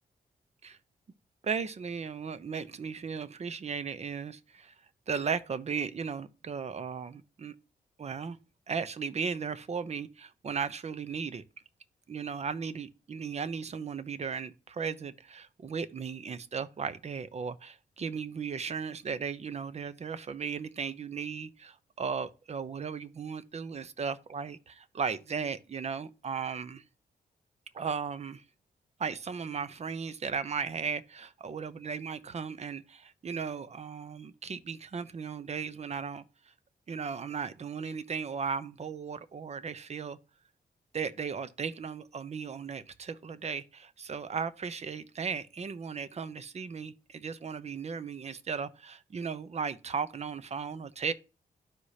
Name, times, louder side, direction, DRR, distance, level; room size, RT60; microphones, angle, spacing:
voice 1, 1.4-4.7 5.1-7.5 8.0-8.4 8.7-11.4 12.1-26.8 27.7-28.4 29.0-36.2 36.9-40.2 40.9-51.1, right 6 dB, 45° right, 0.7 m, -36 dB
12.5 x 4.9 x 2.8 m
cardioid pair, 100°, 16 cm